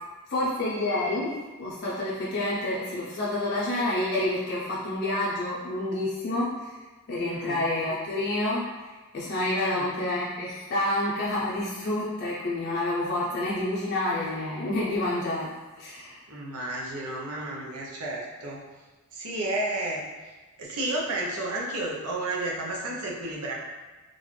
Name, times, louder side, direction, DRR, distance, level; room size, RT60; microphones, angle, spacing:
voice 1, 0.3-6.8 7.1-8.7 9.1-16.2, left 1 dB, 50° left, -7 dB, 0.6 m, -28 dB
voice 2, 7.2-7.7 9.6-9.9 16.3-18.6 19.1-20.0 20.6-23.5, right 2 dB, 85° right, -3 dB, 0.8 m, -32 dB
3.8 x 2.5 x 3.2 m, 1.2 s
head